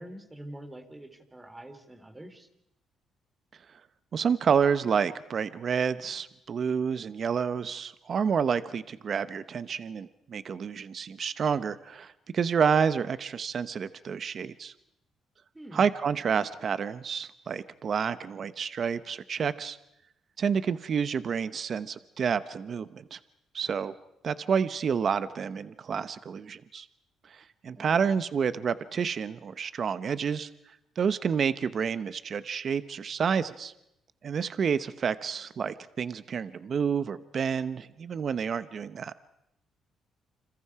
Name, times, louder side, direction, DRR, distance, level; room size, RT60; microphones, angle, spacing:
voice 1, 0.0-2.5 15.5-15.9 27.8-28.2, right 1 dB, 15° right, 7 dB, 3.5 m, -45 dB
voice 2, 4.1-14.7 15.7-19.8 20.4-23.2 23.5-23.9 24.2-26.9 27.3-30.5 31.0-33.7 34.2-39.1, right 6 dB, 50° right, 14 dB, 0.9 m, -29 dB
29.0 x 27.0 x 4.9 m, 0.82 s
cardioid pair, 90°, 0 cm